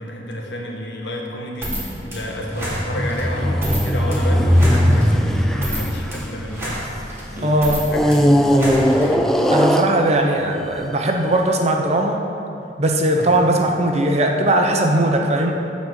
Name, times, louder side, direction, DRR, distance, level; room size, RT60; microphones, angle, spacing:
voice 1, 0.0-9.3 13.2-13.4, left 1 dB, 80° left, -1 dB, 1.5 m, -31 dB
sound 1, 1.6-9.5, equal, 15° right, 2.2 m, -30 dB
sound 2, 2.4-7.1 7.9-10.4 11.1-11.2, equal, ahead, 0.4 m, -18 dB
voice 2, 7.4-7.8 9.5-12.2 12.8-15.5, right 1 dB, 40° right, 2 dB, 0.9 m, -19 dB
12.5 x 4.3 x 7.4 m, 2.6 s
head